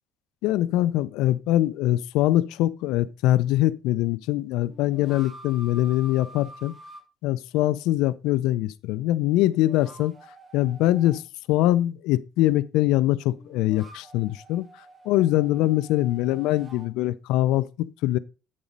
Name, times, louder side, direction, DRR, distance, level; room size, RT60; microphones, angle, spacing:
voice 1, 0.4-6.7 7.2-10.1 10.5-11.2 11.5-14.7 15.1-18.2, left 15 dB, 80° left, 0.4 m, -23 dB
sound 1, 4.6-7.0 9.4-11.2 13.3-16.9, right 1 dB, 15° right, 1.2 m, -47 dB
8.7 x 4.0 x 5.1 m
cardioid pair, 160°, 0 cm